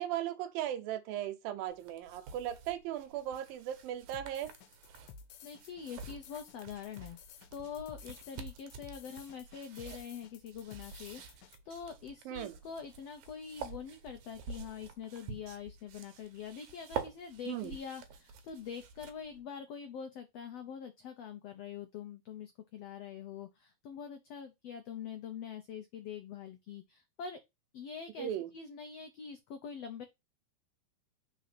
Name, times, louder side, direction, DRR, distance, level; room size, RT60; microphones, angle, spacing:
voice 1, 0.0-4.5 12.3-12.5 17.5-17.8 28.2-28.5, right 11 dB, 85° right, 2.5 m, -37 dB
sound 1, 1.7-19.4, right 7 dB, 70° right, 2.2 m, -48 dB
sound 2, 4.1-11.6, left 6 dB, 75° left, 2.2 m, -53 dB
voice 2, 5.4-7.2 7.5-27.4 27.7-30.0, left 7 dB, 90° left, 1.4 m, -44 dB
4.9 x 4.2 x 5.8 m
omnidirectional pair, 4.0 m